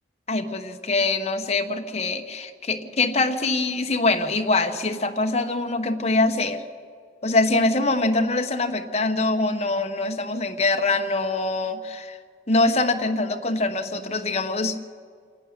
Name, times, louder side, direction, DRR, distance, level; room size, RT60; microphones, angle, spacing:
voice 1, 0.3-6.6 7.2-12.2 12.5-14.8, left 2 dB, 35° left, 6 dB, 1.1 m, -24 dB
26.5 x 11.5 x 9.6 m, 2.1 s
head